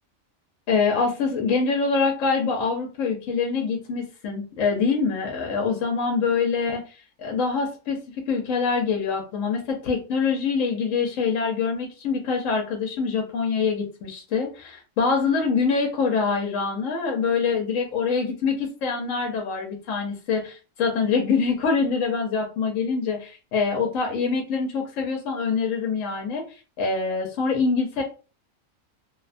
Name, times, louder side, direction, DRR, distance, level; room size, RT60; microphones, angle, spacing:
voice 1, 0.7-6.8 7.2-26.4 26.8-28.0, left 5 dB, 70° left, 2 dB, 0.9 m, -25 dB
2.6 x 2.1 x 2.4 m, 0.34 s
omnidirectional pair, 1.4 m